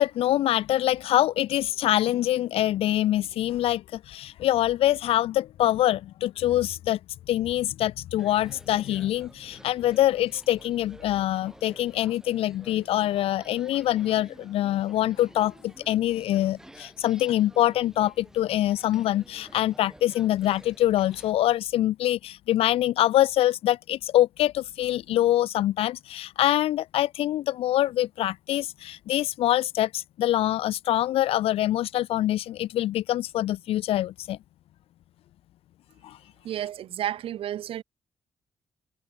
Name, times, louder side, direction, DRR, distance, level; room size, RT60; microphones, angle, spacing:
voice 1, 0.0-7.0 7.3-34.4 36.0-36.2, left 13 dB, 80° left, 0.4 m, -24 dB
sound 1, 8.2-21.3, right 1 dB, 5° right, 7.2 m, -51 dB
voice 2, 36.4-37.8, right 11 dB, 75° right, 1.6 m, -31 dB
cardioid pair, 160°, 10 cm